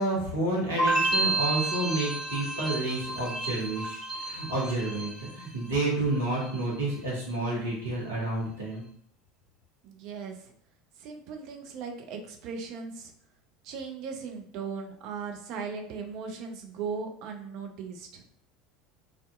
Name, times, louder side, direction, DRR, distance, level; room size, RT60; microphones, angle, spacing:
voice 1, 0.0-8.8, right 2 dB, 75° right, -6 dB, 1.0 m, -30 dB
sound 1, 0.8-5.8 6.1-6.7, right 2 dB, 30° right, 1.5 m, -31 dB
voice 2, 9.8-10.5 11.0-13.1 13.6-18.2, right 5 dB, 50° right, 3 dB, 0.4 m, -38 dB
2.5 x 2.3 x 2.2 m, 0.64 s
figure-of-eight pair, 70°, 0 cm